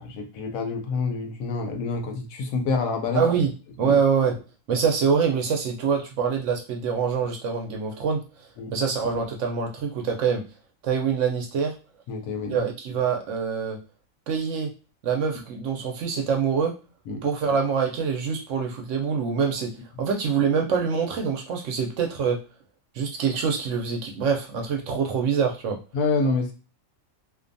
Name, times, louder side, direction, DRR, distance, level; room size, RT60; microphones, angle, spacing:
voice 1, 0.0-3.2 3.8-4.0 8.6-8.7 12.1-12.6 17.1-17.3 25.9-26.5, left 4 dB, 75° left, 4 dB, 1.0 m, -27 dB
voice 2, 3.1-3.5 3.8-4.4 4.7-8.2 8.7-10.4 10.8-11.7 12.5-13.8 14.3-14.7 15.0-16.7 17.2-19.7 20.0-22.4 22.9-25.8, right 6 dB, 70° right, 2 dB, 0.8 m, -25 dB
2.5 x 2.2 x 2.5 m, 0.33 s
omnidirectional pair, 1.5 m